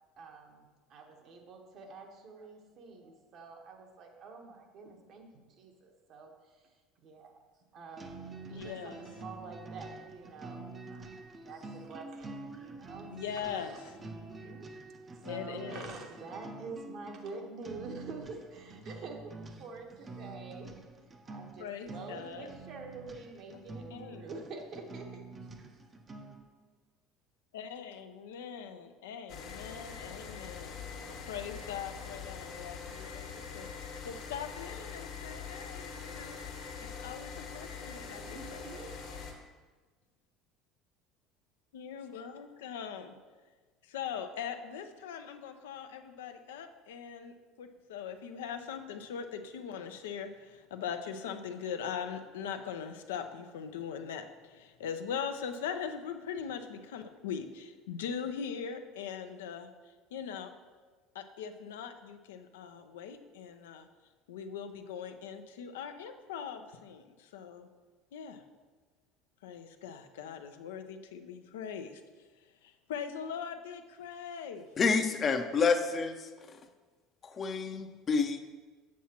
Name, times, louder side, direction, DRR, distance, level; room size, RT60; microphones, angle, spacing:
voice 1, 0.2-6.6 7.0-7.3 7.7-8.2 8.5-11.1 11.4-13.2 13.4-13.7 14.0-14.7 15.1-20.8 21.2-25.2 37.9-38.9, right 3 dB, 55° right, 2 dB, 1.2 m, -47 dB
sound 1, 8.0-26.5, right 3 dB, 30° right, 0.7 m, -47 dB
voice 2, 8.5-9.0 13.1-13.9 15.2-16.0 21.6-22.5 23.9-24.3 27.5-30.8 31.1-33.7 34.0-36.4 36.8-38.6 41.7-43.2 43.8-60.5 61.1-63.9 64.3-67.7 68.1-68.4 69.4-74.7, left 7 dB, 80° left, 7 dB, 0.5 m, -41 dB
sound 2, 29.3-39.3, left 6 dB, 65° left, 1.3 m, -43 dB
voice 3, 74.8-76.6 77.2-78.4, left 5 dB, 40° left, 7 dB, 0.6 m, -29 dB
7.2 x 7.2 x 2.9 m, 1.4 s
hypercardioid pair, 75°, 0 cm